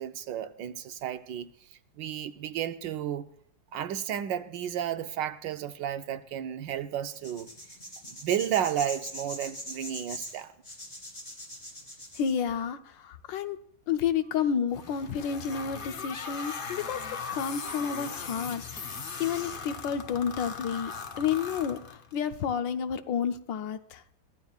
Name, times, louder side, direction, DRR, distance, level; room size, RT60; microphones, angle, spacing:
voice 1, 0.0-1.5 2.0-3.3 3.7-7.5 8.0-10.5, right 10 dB, 75° right, 1.3 m, -32 dB
sound 1, 7.1-12.3, equal, 20° left, 3.9 m, -41 dB
voice 2, 12.2-12.8 13.3-13.6 13.9-17.0 17.3-18.9 19.2-20.9 21.2-24.0, left 7 dB, 70° left, 1.4 m, -30 dB
sound 2, 14.7-22.3, left 5 dB, 50° left, 0.6 m, -39 dB
23.5 x 14.5 x 2.4 m
omnidirectional pair, 2.1 m